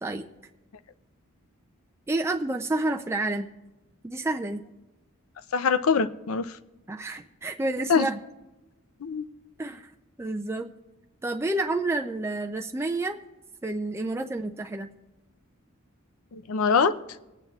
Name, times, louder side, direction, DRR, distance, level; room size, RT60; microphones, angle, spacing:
voice 1, 2.1-3.5 4.0-4.6 6.9-8.2 9.6-9.9 10.2-10.7 11.2-13.2 13.6-14.9, right 2 dB, 10° right, 4 dB, 0.3 m, -29 dB
voice 2, 5.5-6.6 7.9-8.1 9.0-9.3 16.3-17.0, left 5 dB, 80° left, 13 dB, 0.5 m, -23 dB
25.5 x 9.1 x 2.3 m, 1.0 s
head